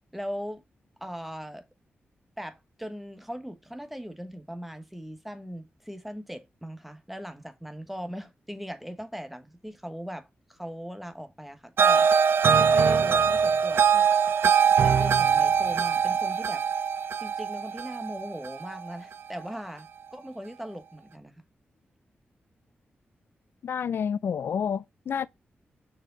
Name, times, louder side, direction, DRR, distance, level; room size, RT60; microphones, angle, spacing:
voice 1, 0.1-0.6 1.0-1.7 2.4-12.1 12.5-16.8 17.2-21.3, equal, 5° right, 1.2 m, -39 dB
sound 1, 11.8-18.9, right 7 dB, 75° right, 0.5 m, -22 dB
voice 2, 23.6-25.3, left 7 dB, 75° left, 0.3 m, -29 dB
6.1 x 4.8 x 3.9 m
wide cardioid pair, 95°, 4 cm